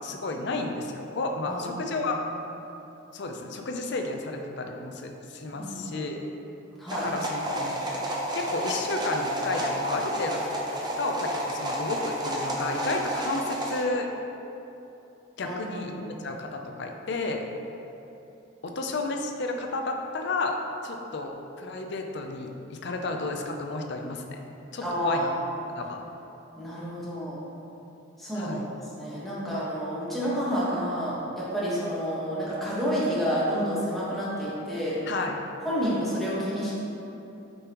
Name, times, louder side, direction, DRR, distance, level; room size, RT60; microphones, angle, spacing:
voice 1, 0.0-2.2 3.1-6.2 6.9-7.8 8.3-10.5 10.8-14.1 15.4-15.9 16.2-17.5 18.6-20.6 20.8-24.4 24.7-25.3 25.8-26.0 28.3-28.6 35.1-35.4, left 2 dB, 55° left, 3 dB, 0.5 m, -32 dB
voice 2, 1.5-2.0 5.6-6.1 6.8-7.1 15.4-16.2 24.8-25.4 26.6-27.4 28.2-28.6 28.9-34.9 35.6-36.8, equal, ahead, -10 dB, 1.3 m, -30 dB
sound 1, 6.9-13.8, equal, 20° right, 0.6 m, -31 dB
6.8 x 5.3 x 3.0 m, 3.0 s
head